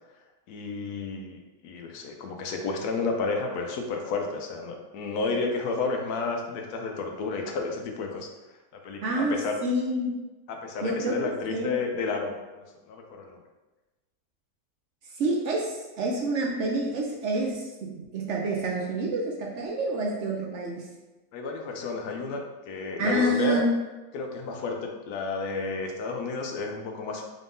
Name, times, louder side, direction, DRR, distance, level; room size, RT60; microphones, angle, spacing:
voice 1, 0.5-8.3 8.8-9.6 10.5-13.4 21.3-23.6 24.1-27.2, left 4 dB, 90° left, 3 dB, 1.2 m, -31 dB
voice 2, 9.0-9.4 9.6-10.1 10.8-11.1 11.5-11.8 15.1-20.8 23.0-23.8, right 1 dB, 65° right, -1 dB, 0.8 m, -28 dB
3.8 x 3.6 x 2.6 m, 1.1 s
omnidirectional pair, 1.6 m